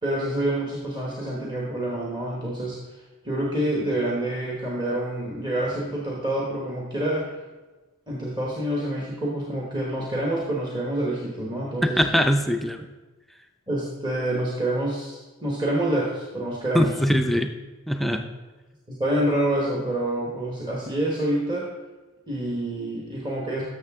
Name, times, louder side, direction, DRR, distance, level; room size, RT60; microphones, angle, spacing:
voice 1, 0.0-2.8 3.2-7.3 8.1-12.0 13.7-17.0 18.1-18.2 18.9-21.7 22.3-23.6, right 1 dB, 20° right, -4 dB, 1.1 m, -27 dB
voice 2, 11.8-12.9 16.7-17.5 17.9-18.2, equal, ahead, 5 dB, 0.4 m, -22 dB
12.0 x 6.8 x 3.6 m, 1.2 s
head